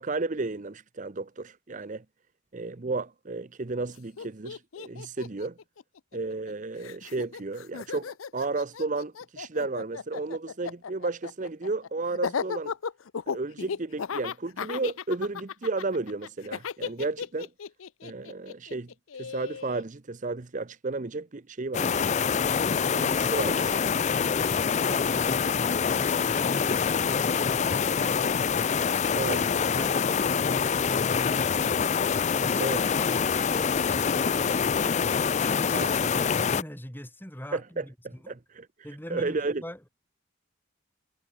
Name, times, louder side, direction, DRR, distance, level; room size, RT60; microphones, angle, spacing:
voice 1, 0.0-2.0 2.5-5.6 6.1-12.7 13.3-17.5 18.0-18.9 19.2-22.1 22.9-23.8 29.1-29.6 32.6-32.9 35.7-36.1 37.5-37.8 38.3-38.7 39.1-39.6, right 3 dB, 40° right, 0.7 m, -33 dB
Laughter, 3.9-4.0 4.2-6.5 6.8-19.8, left 6 dB, 80° left, 0.6 m, -36 dB
sound 1, 21.7-36.6, left 6 dB, 35° left, 0.4 m, -25 dB
voice 2, 24.1-28.4 29.0-31.7 32.3-35.0 35.4-37.9 38.2-38.4 38.8-39.8, equal, 10° left, 6.7 m, -42 dB
head